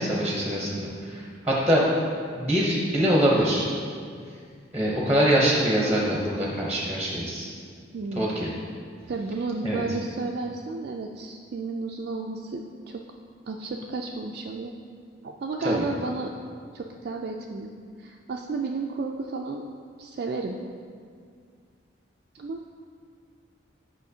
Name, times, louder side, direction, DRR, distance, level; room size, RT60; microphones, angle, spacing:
voice 1, 0.0-1.8 2.4-3.7 4.7-7.5 8.2-8.5 9.6-9.8 15.6-15.8, equal, 10° right, -4 dB, 0.8 m, -24 dB
voice 2, 7.9-8.4 9.1-13.0 13.5-14.7 15.2-16.3 16.7-17.7 18.0-19.6 20.0-20.6 22.3-22.6, right 3 dB, 55° right, 1 dB, 0.3 m, -32 dB
9.0 x 5.6 x 2.7 m, 2.2 s
head